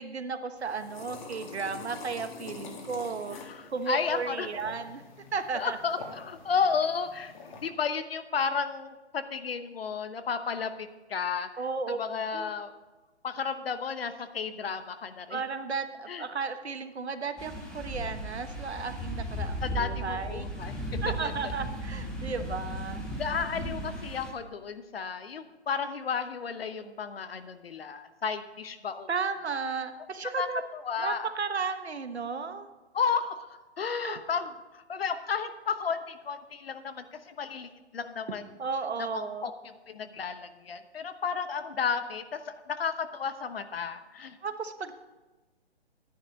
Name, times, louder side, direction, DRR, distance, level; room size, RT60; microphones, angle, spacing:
voice 1, 0.0-3.4 3.7-5.0 5.3-5.8 11.6-12.0 12.3-12.5 15.3-20.5 21.0-23.1 29.1-30.6 31.0-32.7 34.0-34.2 38.6-39.5 44.4-44.9, right 5 dB, 70° right, 9 dB, 1.2 m, -34 dB
sound 1, 0.6-7.7, left 4 dB, 45° left, 2.0 m, -46 dB
voice 2, 3.3-4.5 5.5-7.3 7.6-11.5 11.9-12.7 13.2-15.4 16.1-16.3 19.6-20.7 21.2-21.5 23.2-29.1 30.4-30.5 30.7-31.3 32.9-38.5 39.0-44.4, left 6 dB, 60° left, 10 dB, 1.0 m, -33 dB
sound 2, 17.4-24.3, equal, ahead, 0.6 m, -36 dB
11.5 x 10.0 x 5.3 m, 1.2 s
figure-of-eight pair, 140°, 33 cm